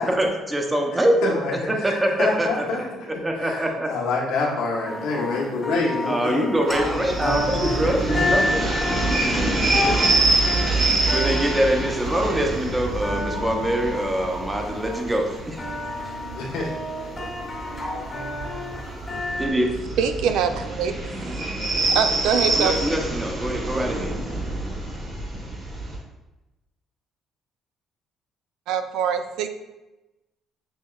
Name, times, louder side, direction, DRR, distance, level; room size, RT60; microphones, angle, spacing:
voice 1, 0.1-1.3 1.7-3.9 6.1-8.5 11.1-15.7 19.4-19.7 22.6-24.1, right 1 dB, 10° right, 2 dB, 0.6 m, -24 dB
voice 2, 1.2-2.9 3.1-6.5 7.6-8.7 9.0-10.2 16.3-16.9 17.5-17.8, left 3 dB, 85° left, -3 dB, 1.1 m, -28 dB
sound 1, 4.8-19.5, left 2 dB, 25° left, 0.8 m, -30 dB
sound 2, 6.7-26.0, right 2 dB, 35° right, 1.4 m, -26 dB
voice 3, 20.0-20.9 21.9-22.9 28.7-29.5, right 7 dB, 80° right, 8 dB, 0.3 m, -23 dB
6.3 x 3.0 x 2.3 m, 1.0 s
cardioid pair, 135°, 0 cm